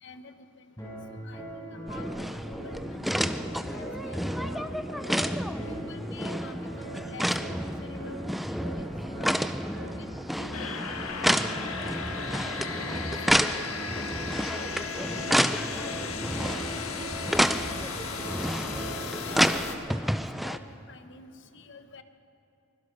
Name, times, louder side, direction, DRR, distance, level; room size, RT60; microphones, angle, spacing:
voice 1, 0.0-0.3 1.2-4.7 5.7-8.2 8.5-8.8 9.2-9.4 10.0-10.1 10.4-11.4 11.8-13.1 13.5-13.7 14.4-17.8 18.1-18.5 19.2-20.1 20.4-22.0, left 4 dB, 60° left, 8 dB, 1.2 m, -49 dB
sound 1, 0.8-19.8, right 1 dB, 15° left, 6.0 m, -40 dB
sound 2, 1.9-20.6, equal, ahead, 0.5 m, -30 dB
sound 3, 10.5-19.7, left 5 dB, 90° left, 1.7 m, -36 dB
23.5 x 21.5 x 5.4 m, 3.0 s
head